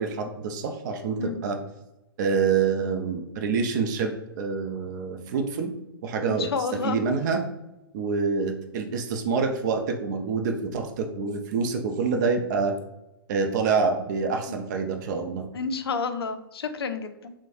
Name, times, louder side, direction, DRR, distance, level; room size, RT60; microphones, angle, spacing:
voice 1, 0.0-1.6 2.2-5.7 6.0-6.5 6.8-7.4 7.9-12.7 13.3-15.5, right 5 dB, 50° right, 4 dB, 0.4 m, -26 dB
voice 2, 6.3-7.0 15.5-17.3, left 5 dB, 80° left, 9 dB, 0.4 m, -30 dB
3.1 x 2.0 x 2.5 m, 0.94 s
hypercardioid pair, 120°, 13 cm